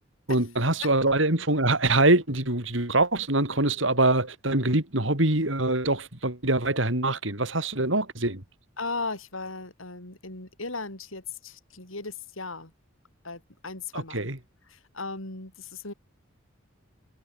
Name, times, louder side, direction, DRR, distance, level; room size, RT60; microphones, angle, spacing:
voice 1, 0.3-8.4 13.9-14.4, right 2 dB, 70° right, 4.9 m, -24 dB
voice 2, 8.8-12.7 13.2-14.2 14.7-15.9, left 3 dB, 85° left, 6.8 m, -36 dB
head